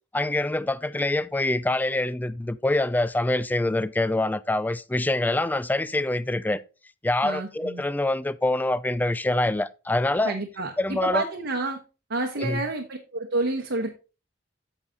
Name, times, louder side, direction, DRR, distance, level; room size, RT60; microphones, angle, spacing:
voice 1, 0.1-6.6 7.0-10.3 10.8-11.2 12.4-12.6, left 2 dB, 10° left, 0.3 m, -25 dB
voice 2, 7.2-7.8 10.2-11.8 12.1-13.9, right 2 dB, 65° right, 1.0 m, -29 dB
8.8 x 6.3 x 3.8 m
head